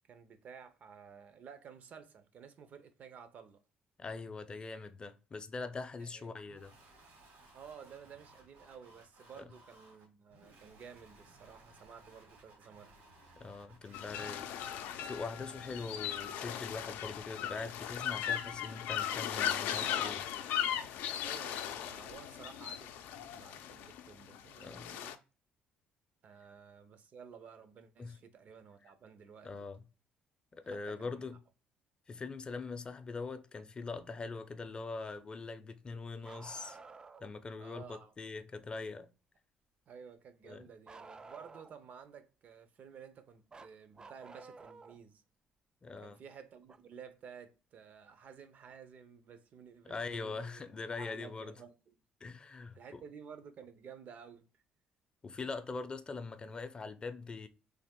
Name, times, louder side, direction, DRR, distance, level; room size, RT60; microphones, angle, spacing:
voice 1, 0.1-3.6 6.0-6.3 7.5-12.9 21.2-25.2 26.2-29.7 30.6-31.3 37.6-38.1 39.9-45.2 46.0-50.6 51.0-51.7 52.4-54.6, right 6 dB, 55° right, 0.7 m, -53 dB
voice 2, 4.0-6.7 9.4-9.5 13.4-14.5 15.0-20.3 24.6-25.0 28.0-28.1 29.4-29.8 30.5-31.4 32.1-36.8 37.2-39.1 40.4-40.6 45.8-46.2 49.8-51.5 52.2-53.0 55.2-57.5, left 4 dB, 30° left, 0.5 m, -42 dB
sound 1, 6.4-15.1, right 2 dB, 80° right, 2.1 m, -61 dB
sound 2, 13.9-25.1, left 10 dB, 85° left, 0.4 m, -38 dB
Bark, 36.2-37.3 40.9-41.9 43.5-45.0 46.7-46.8 48.7-48.8 49.9-50.0, right 4 dB, 25° right, 0.3 m, -52 dB
3.4 x 2.4 x 3.6 m
cardioid pair, 95°, 3 cm